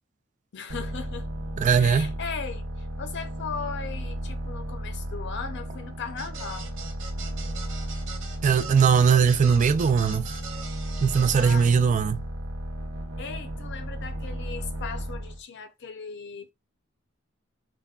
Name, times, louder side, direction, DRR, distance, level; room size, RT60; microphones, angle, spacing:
voice 1, 0.5-1.3 1.8-6.7 11.4-11.7 13.2-16.5, left 6 dB, 60° left, 0.5 m, -37 dB
sound 1, 0.7-15.4, equal, 85° right, 0.9 m, -34 dB
voice 2, 1.6-2.1 8.4-10.3 11.0-12.2, right 6 dB, 40° right, 0.3 m, -20 dB
sound 2, 6.2-11.7, right 5 dB, 65° right, 1.0 m, -41 dB
3.4 x 2.2 x 2.3 m
head